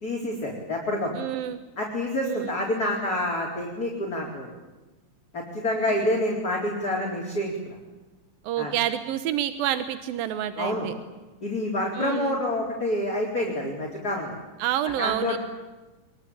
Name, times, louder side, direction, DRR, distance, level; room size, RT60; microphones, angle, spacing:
voice 1, 0.0-1.1 1.8-4.5 5.3-7.5 8.6-8.7 10.6-10.9 11.4-14.4 15.0-15.4, left 1 dB, 25° left, -2 dB, 4.4 m, -27 dB
voice 2, 1.1-1.6 2.2-2.5 8.4-10.9 11.9-12.4 14.6-15.4, right 11 dB, 85° right, 10 dB, 2.9 m, -28 dB
25.5 x 22.5 x 8.8 m, 1.2 s
omnidirectional pair, 4.0 m